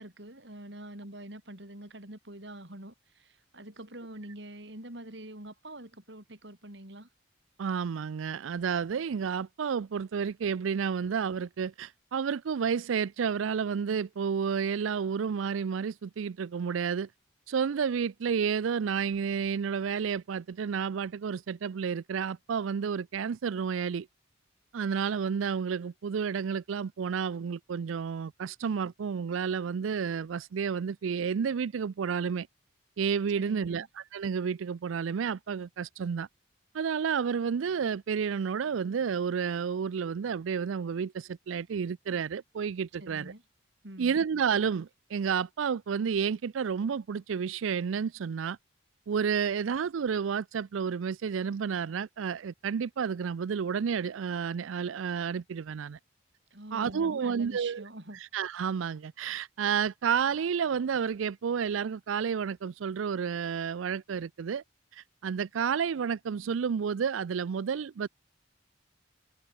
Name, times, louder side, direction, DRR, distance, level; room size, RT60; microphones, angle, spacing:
voice 1, 0.0-7.1 33.4-33.9 43.0-43.4 43.8-44.2 56.5-58.2, right 1 dB, 60° right, 4.4 m, -45 dB
voice 2, 7.6-17.1 17.5-24.1 24.7-32.5 33.0-36.3 36.7-43.3 44.0-48.6 49.1-56.0 56.7-57.8 58.1-64.6 64.9-68.1, right 6 dB, 85° right, 0.4 m, -31 dB
head